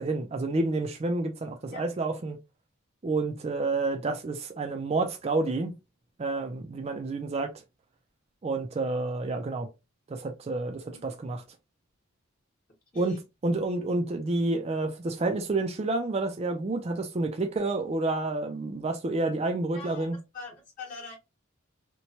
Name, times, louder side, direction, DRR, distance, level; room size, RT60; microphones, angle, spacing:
voice 1, 0.0-2.4 3.0-5.7 6.2-7.5 8.4-9.7 10.1-11.4 13.0-13.2 13.4-20.2, right 2 dB, 30° right, 0.4 m, -29 dB
voice 2, 19.7-21.2, left 3 dB, 40° left, 1.0 m, -43 dB
3.0 x 2.1 x 2.7 m
head